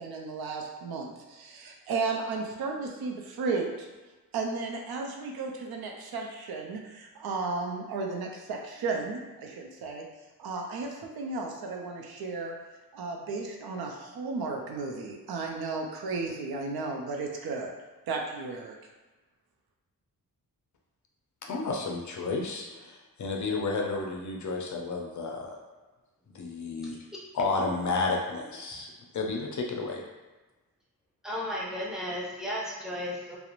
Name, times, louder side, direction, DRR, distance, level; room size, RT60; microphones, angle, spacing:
voice 1, 0.0-3.9 4.3-10.0 10.4-12.5 12.9-17.7 18.1-18.8, right 3 dB, 75° right, 1 dB, 0.5 m, -34 dB
voice 2, 21.5-25.6 26.3-27.0 27.3-30.0, left 3 dB, 50° left, 0 dB, 0.5 m, -31 dB
voice 3, 31.2-33.4, equal, ahead, -5 dB, 0.5 m, -34 dB
2.4 x 2.0 x 2.9 m, 1.2 s
wide cardioid pair, 115°, 37 cm